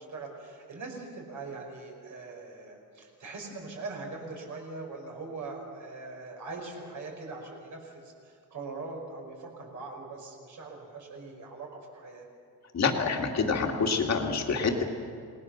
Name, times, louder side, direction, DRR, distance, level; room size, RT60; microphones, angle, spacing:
voice 1, 0.0-12.3, right 3 dB, 45° right, 0 dB, 5.4 m, -41 dB
voice 2, 12.7-14.8, left 4 dB, 40° left, 2 dB, 2.5 m, -27 dB
28.5 x 20.5 x 6.6 m, 2.3 s
cardioid pair, 175°, 40 cm